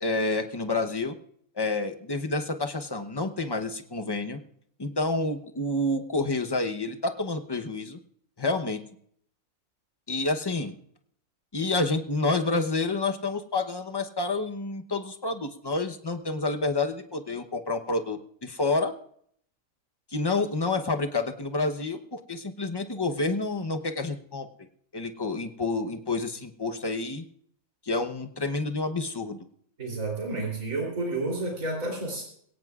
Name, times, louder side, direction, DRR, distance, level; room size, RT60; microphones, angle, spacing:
voice 1, 0.0-1.1 1.6-4.4 4.8-8.0 8.4-8.8 10.1-10.7 11.5-18.9 20.1-24.5 24.9-27.3 27.8-29.4, left 3 dB, 20° left, 6 dB, 0.8 m, -29 dB
voice 2, 29.8-32.2, right 2 dB, 80° right, -1 dB, 4.0 m, -30 dB
22.0 x 17.5 x 2.4 m, 0.66 s
omnidirectional pair, 1.4 m